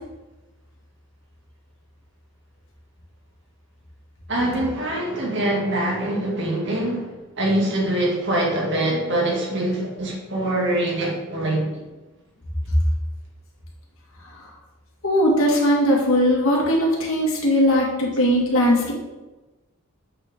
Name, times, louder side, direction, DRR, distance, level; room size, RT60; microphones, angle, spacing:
voice 1, 4.3-11.8, right 1 dB, 55° right, -2 dB, 2.3 m, -24 dB
voice 2, 15.0-18.9, equal, 65° left, -2 dB, 2.3 m, -19 dB
7.9 x 7.2 x 3.8 m, 1.1 s
head